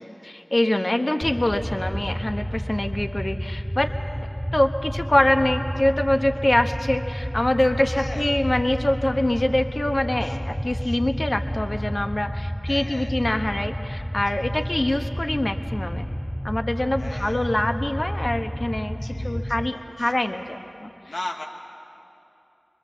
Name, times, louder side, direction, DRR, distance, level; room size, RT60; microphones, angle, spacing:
voice 1, 0.0-3.9 4.5-16.1 16.4-19.0 19.2-20.9, left 1 dB, 45° left, 6 dB, 1.0 m, -24 dB
sound 1, 1.2-19.7, equal, 10° left, 0.5 m, -31 dB
voice 2, 7.9-8.4 10.2-10.4 10.8-11.0 12.7-13.2 14.3-14.6 17.0-17.5 19.0-20.1 21.1-21.5, left 1 dB, 85° left, 1 dB, 1.2 m, -38 dB
25.0 x 22.0 x 7.3 m, 2.8 s
wide cardioid pair, 50°, 0 cm